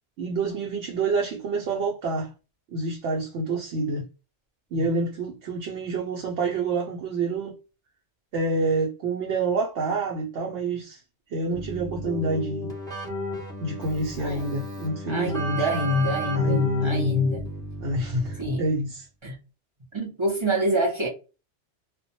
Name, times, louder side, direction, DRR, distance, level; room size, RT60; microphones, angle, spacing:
voice 1, 0.2-2.3 2.7-4.1 4.7-7.6 8.3-11.0 11.3-12.7 13.6-15.8 16.3-17.3 17.8-19.1, right 2 dB, 75° right, 0.9 m, -27 dB
Keyboard (musical), 11.5-18.8, equal, 5° left, 0.9 m, -33 dB
voice 2, 14.2-14.7 15.1-17.4 18.4-18.6 19.2-19.4 19.9-21.1, equal, 40° right, 0.4 m, -26 dB
2.1 x 2.1 x 2.7 m
omnidirectional pair, 1.2 m